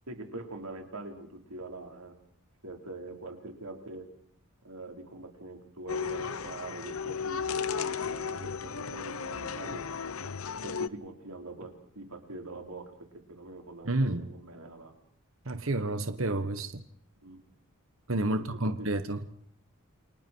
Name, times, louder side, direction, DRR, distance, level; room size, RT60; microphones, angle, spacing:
voice 1, 0.1-2.2 2.6-4.1 4.6-9.9 10.6-14.9 17.2-17.4 18.3-18.9, right 2 dB, 85° right, 4.6 m, -44 dB
sound 1, 5.9-10.9, left 6 dB, 70° left, 1.0 m, -34 dB
voice 2, 13.9-14.3 15.5-16.8 18.1-19.2, right 2 dB, 65° right, 1.4 m, -30 dB
29.5 x 25.0 x 4.7 m
head